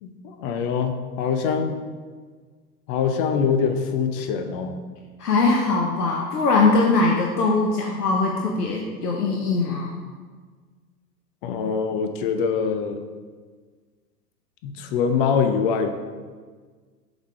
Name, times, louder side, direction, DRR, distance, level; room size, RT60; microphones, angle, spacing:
voice 1, 0.0-1.8 2.9-4.8 11.4-13.0 14.6-15.9, left 6 dB, 35° left, 7 dB, 0.7 m, -24 dB
voice 2, 5.2-10.0, left 3 dB, 70° left, 0 dB, 0.9 m, -21 dB
7.3 x 3.6 x 4.8 m, 1.5 s
figure-of-eight pair, 95°, 49 cm